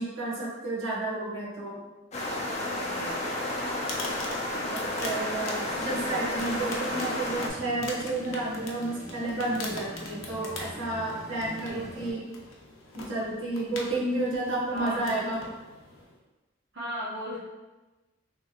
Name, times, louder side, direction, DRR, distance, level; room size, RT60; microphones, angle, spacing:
voice 1, 0.0-1.8 4.7-12.2 12.9-15.4, right 2 dB, 80° right, -7 dB, 1.1 m, -31 dB
sound 1, 2.1-7.5, left 1 dB, 35° left, 0.5 m, -31 dB
voice 2, 2.7-3.2 11.6-12.1 13.9-14.2 14.7-15.4 16.7-17.4, equal, 60° right, -8 dB, 0.7 m, -37 dB
sound 2, 3.5-16.2, left 2 dB, 90° left, 0.6 m, -43 dB
sound 3, 5.7-12.1, equal, 25° right, 1.2 m, -44 dB
3.2 x 2.9 x 2.4 m, 1.1 s
head